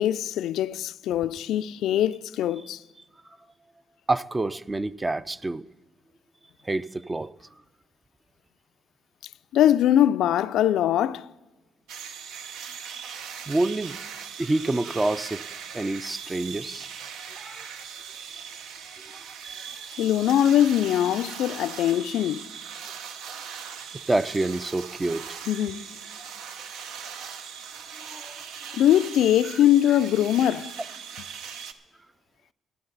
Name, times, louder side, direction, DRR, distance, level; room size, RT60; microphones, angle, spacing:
voice 1, 0.0-2.8 9.5-11.3 20.0-22.5 25.5-25.9 28.7-30.7, left 11 dB, 80° left, 0.3 m, -22 dB
voice 2, 4.1-5.6 6.7-7.3 13.5-14.1 14.4-15.4 15.7-16.9 17.4-17.7 19.1-19.2 24.1-25.4 26.2-26.3 28.1-28.4, right 2 dB, 20° right, 0.4 m, -27 dB
sound 1, 11.9-31.7, right 7 dB, 85° right, 0.7 m, -40 dB
15.0 x 11.5 x 3.9 m
cardioid pair, 90°, 0 cm